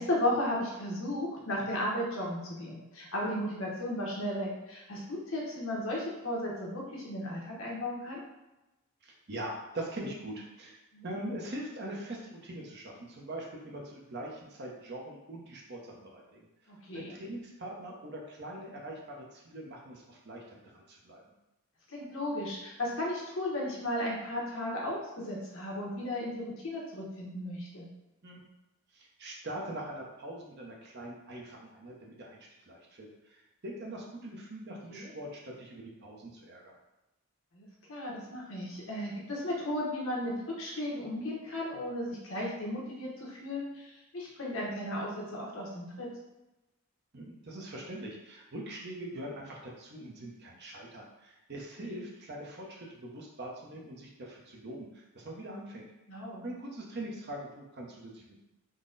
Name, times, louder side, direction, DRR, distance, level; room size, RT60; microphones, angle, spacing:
voice 1, 0.0-8.2 10.9-11.1 16.7-17.1 21.9-27.9 34.9-35.1 37.5-46.1 51.9-52.0 56.1-56.4, left 1 dB, 65° left, -3 dB, 1.0 m, -35 dB
voice 2, 9.0-16.5 16.9-21.2 28.2-28.4 28.9-32.4 32.7-36.7 47.1-55.9 56.4-58.4, right 1 dB, 50° right, -1 dB, 0.7 m, -42 dB
3.8 x 2.1 x 3.8 m, 0.99 s
head